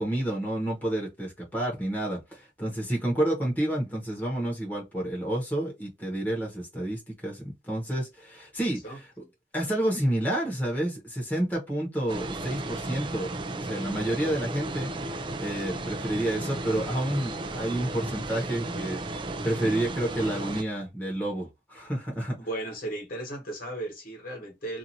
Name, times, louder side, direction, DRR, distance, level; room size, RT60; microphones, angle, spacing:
voice 1, 0.0-9.1 9.5-22.4, right 1 dB, 10° left, 1.0 m, -30 dB
voice 2, 8.8-9.3 22.4-24.8, right 1 dB, 50° left, 1.3 m, -36 dB
sound 1, 12.1-20.6, right 2 dB, 25° right, 0.3 m, -34 dB
2.6 x 2.5 x 2.7 m
head